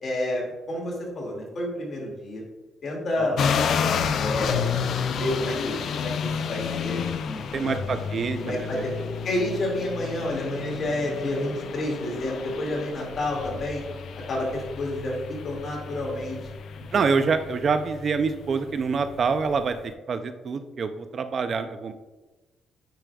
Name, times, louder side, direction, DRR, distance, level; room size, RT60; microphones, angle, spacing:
voice 1, 0.0-2.4 2.8-3.4 4.2-4.6 5.2-7.8 8.4-8.9 9.2-13.8 14.3-15.1 15.4-16.4 16.8-17.0, left 1 dB, 50° left, -1 dB, 2.1 m, -29 dB
sound 1, 3.4-19.9, left 7 dB, 65° left, 0.4 m, -31 dB
voice 2, 7.5-8.8 16.9-21.9, right 5 dB, 50° right, 9 dB, 0.4 m, -26 dB
9.1 x 4.9 x 2.3 m, 1.2 s
cardioid pair, 90°, 0 cm